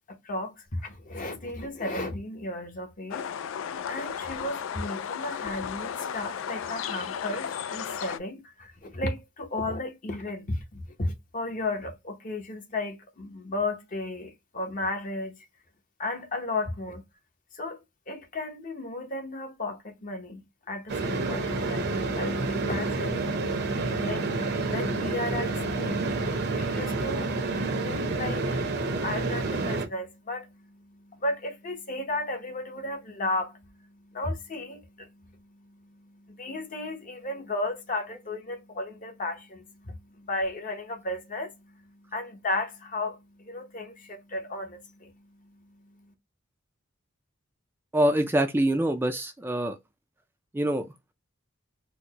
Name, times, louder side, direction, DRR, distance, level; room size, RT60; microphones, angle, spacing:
voice 1, 0.0-3.3 3.9-15.4 16.0-17.0 17.6-46.1, left 2 dB, 45° left, 0.9 m, -34 dB
sound 1, 3.1-8.2, left 8 dB, 75° left, 0.3 m, -34 dB
sound 2, 20.9-29.9, right 3 dB, 55° right, 0.7 m, -29 dB
voice 2, 47.9-49.8 50.5-50.9, right 1 dB, 10° right, 0.3 m, -25 dB
4.3 x 2.1 x 2.8 m
head